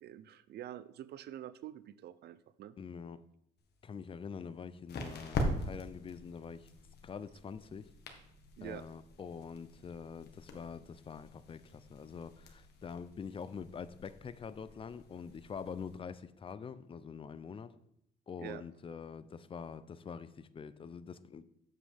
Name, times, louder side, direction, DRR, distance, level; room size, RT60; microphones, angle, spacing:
voice 1, 0.0-2.7 8.6-8.8 18.4-18.6, right 11 dB, 55° right, 0.5 m, -46 dB
voice 2, 2.8-3.2 3.8-6.7 7.0-7.9 8.6-17.7 18.3-21.4, left 6 dB, 25° left, 0.5 m, -45 dB
sound 1, 3.6-16.0, left 1 dB, 55° left, 1.5 m, -44 dB
8.2 x 7.6 x 3.5 m
cardioid pair, 100°, 20 cm